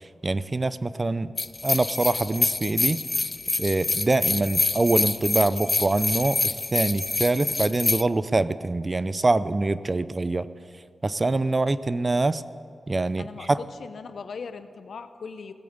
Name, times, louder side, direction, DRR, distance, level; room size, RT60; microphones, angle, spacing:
voice 1, 0.2-1.3 1.6-3.0 3.6-10.5 11.0-12.4 12.9-13.6, right 2 dB, 35° right, 15 dB, 0.5 m, -24 dB
sound 1, 1.4-8.0, left 3 dB, 40° left, 0.3 m, -26 dB
voice 2, 13.2-15.5, left 5 dB, 80° left, 10 dB, 0.8 m, -39 dB
17.5 x 8.6 x 8.1 m, 2.3 s
cardioid pair, 60°, 0 cm